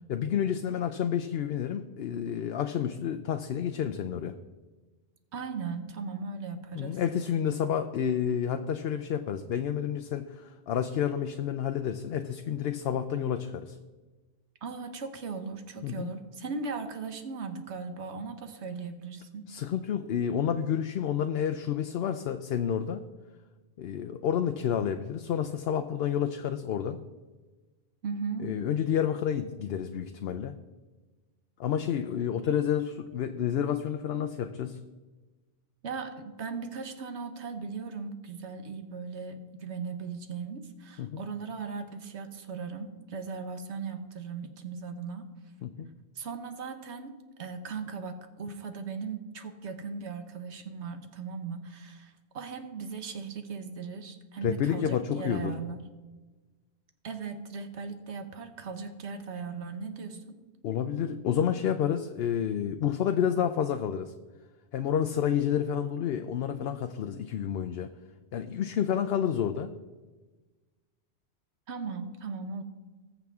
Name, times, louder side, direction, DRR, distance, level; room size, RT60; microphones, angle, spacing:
voice 1, 0.1-4.3 6.7-13.8 15.8-16.1 19.5-23.0 23.8-27.0 28.4-30.5 31.6-34.8 41.0-41.2 45.6-45.9 54.4-55.5 60.6-64.1 64.7-67.9 68.3-69.7, left 9 dB, 70° left, 8 dB, 0.8 m, -29 dB
voice 2, 5.3-7.0 14.6-19.4 28.0-28.5 35.8-45.3 46.2-47.1 47.4-55.8 57.0-60.4 71.7-72.6, right 5 dB, 85° right, 7 dB, 1.3 m, -38 dB
20.0 x 7.1 x 3.6 m, 1.3 s
omnidirectional pair, 1.1 m